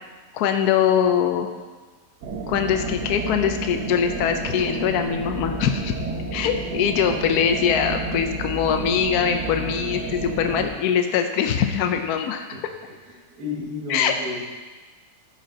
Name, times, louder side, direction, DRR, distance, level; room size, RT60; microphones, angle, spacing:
voice 1, 0.3-1.5 2.5-5.9 6.3-12.4 13.9-14.1, left 8 dB, 75° left, 6 dB, 1.1 m, -22 dB
sound 1, 2.2-10.7, right 3 dB, 85° right, 1.7 m, -31 dB
voice 2, 13.0-14.4, left 3 dB, 65° right, -3 dB, 2.1 m, -34 dB
13.5 x 5.2 x 3.8 m, 1.3 s
omnidirectional pair, 1.8 m